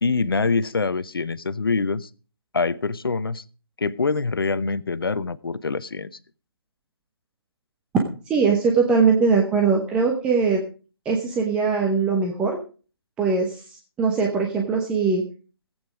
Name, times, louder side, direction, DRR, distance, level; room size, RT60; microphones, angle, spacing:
voice 1, 0.0-2.1 2.5-3.4 3.8-6.1, left 4 dB, 60° left, 17 dB, 0.9 m, -24 dB
voice 2, 8.3-10.6 11.0-12.6 13.2-15.2, right 5 dB, 5° right, 0 dB, 1.1 m, -21 dB
17.0 x 9.0 x 4.9 m, 0.37 s
figure-of-eight pair, 150°, 14 cm